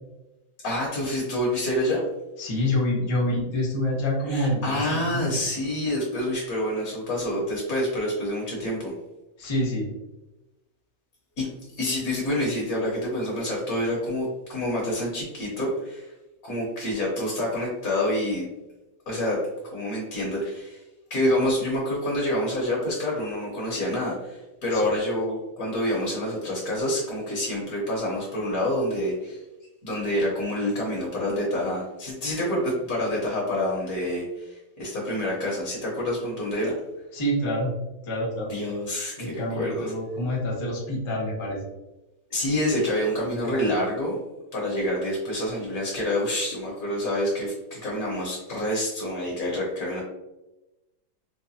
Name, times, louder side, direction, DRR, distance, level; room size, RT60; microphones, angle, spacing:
voice 1, 0.6-2.0 4.3-8.9 11.4-11.5 11.8-16.1 16.4-18.5 19.1-19.4 19.7-20.8 21.1-29.4 29.8-36.7 38.5-39.9 42.3-44.2 44.5-50.0, left 1 dB, 55° left, -4 dB, 1.2 m, -27 dB
voice 2, 2.4-5.4 9.4-9.9 24.7-24.9 37.1-37.7 38.0-38.5 39.2-41.6 43.5-43.6, left 1 dB, 35° left, -4 dB, 0.4 m, -27 dB
4.8 x 2.1 x 2.7 m, 1.0 s
omnidirectional pair, 2.2 m